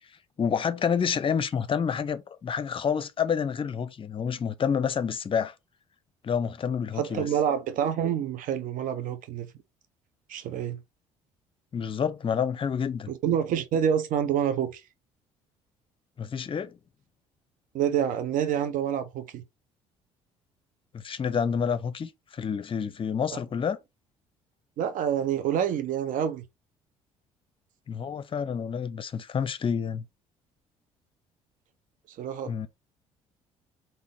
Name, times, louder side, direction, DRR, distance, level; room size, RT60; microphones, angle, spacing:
voice 1, 0.4-5.5 6.2-7.3 11.7-13.1 16.2-16.8 20.9-23.8 27.9-30.0 32.5-32.7, left 7 dB, 35° left, 0.6 m, -28 dB
voice 2, 6.9-9.5 10.3-10.8 13.1-14.8 17.7-19.4 23.3-23.4 24.8-26.4 32.2-32.5, right 9 dB, 55° right, 0.8 m, -27 dB
3.7 x 2.6 x 3.7 m
hypercardioid pair, 55°, 16 cm